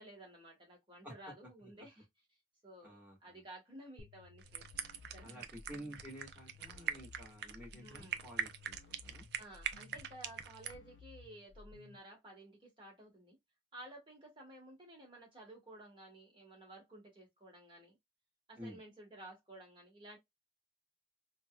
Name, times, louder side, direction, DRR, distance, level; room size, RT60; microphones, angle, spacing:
voice 1, 0.0-2.1 2.6-5.4 7.8-8.2 9.4-13.4 13.7-18.0 18.5-20.2, right 1 dB, 25° right, 1.5 m, -54 dB
voice 2, 2.8-3.4 5.2-8.8 9.0-9.2 18.6-18.8, equal, 5° right, 1.8 m, -51 dB
sound 1, 4.0-12.0, left 4 dB, 65° left, 0.5 m, -57 dB
sound 2, 4.4-10.7, right 8 dB, 55° right, 0.4 m, -42 dB
3.9 x 2.3 x 2.3 m
head